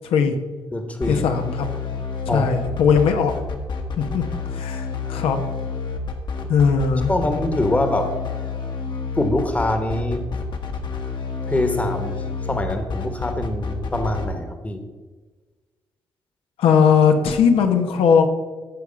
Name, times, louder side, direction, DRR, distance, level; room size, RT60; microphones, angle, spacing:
voice 1, 0.0-0.4 1.1-1.7 2.3-3.3 4.0-4.2 4.5-5.4 6.5-7.1 16.6-18.3, left 6 dB, 90° left, 6 dB, 1.0 m, -18 dB
voice 2, 0.7-1.2 2.3-2.8 7.1-8.1 9.2-10.2 11.5-12.1 12.4-14.8, left 1 dB, 15° left, 6 dB, 1.1 m, -24 dB
sound 1, 1.0-14.2, left 5 dB, 55° left, 1.4 m, -29 dB
14.5 x 4.9 x 5.1 m, 1.3 s
cardioid pair, 115°, 9 cm